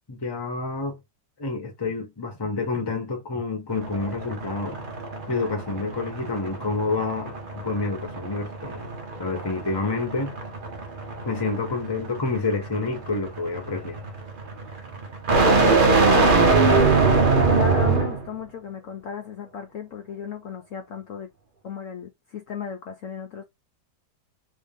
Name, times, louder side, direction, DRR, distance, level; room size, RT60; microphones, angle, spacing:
voice 1, 0.1-1.0 1.4-4.8 5.3-8.9 9.2-10.4 11.2-14.0, left 3 dB, 25° left, 0.6 m, -28 dB
sound 1, 3.7-18.3, right 3 dB, 50° right, 0.6 m, -23 dB
voice 2, 15.5-16.8 17.5-21.3 21.6-23.4, left 6 dB, 70° left, 0.8 m, -35 dB
3.1 x 2.7 x 3.4 m
omnidirectional pair, 1.9 m